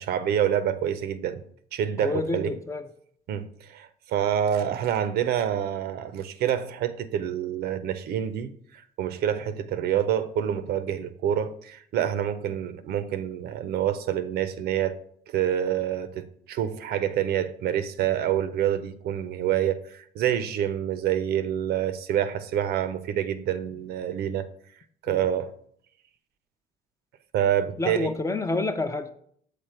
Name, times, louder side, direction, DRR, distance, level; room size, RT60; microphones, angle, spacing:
voice 1, 0.0-1.4 1.7-2.6 3.3-8.5 9.0-15.0 15.3-24.5 25.0-25.5 27.3-28.1, right 10 dB, 70° right, 0.6 m, -27 dB
voice 2, 2.0-2.8 25.1-25.3 27.8-29.1, left 2 dB, 20° left, 0.5 m, -28 dB
6.7 x 4.2 x 4.5 m
cardioid pair, 110°, 17 cm